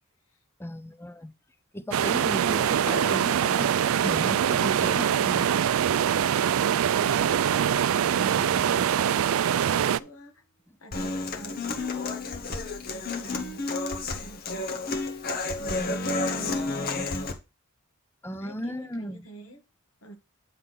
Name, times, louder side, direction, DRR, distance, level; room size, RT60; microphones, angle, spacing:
voice 1, 0.6-1.3 1.7-2.8 3.1-5.5 13.3-13.4 15.8-16.0 18.2-19.3, equal, 10° left, 0.6 m, -36 dB
sound 1, 1.9-10.0, right 9 dB, 75° right, 0.4 m, -23 dB
sound 2, 2.9-7.9, left 1 dB, 85° left, 1.0 m, -43 dB
voice 2, 7.9-10.4 10.8-12.4 12.9-13.7 14.0-15.0 15.6-17.1 18.4-19.6 20.0-20.2, right 1 dB, 65° left, 1.8 m, -45 dB
Human voice / Acoustic guitar, 10.9-17.3, left 3 dB, 45° left, 1.2 m, -31 dB
9.5 x 3.6 x 5.9 m
head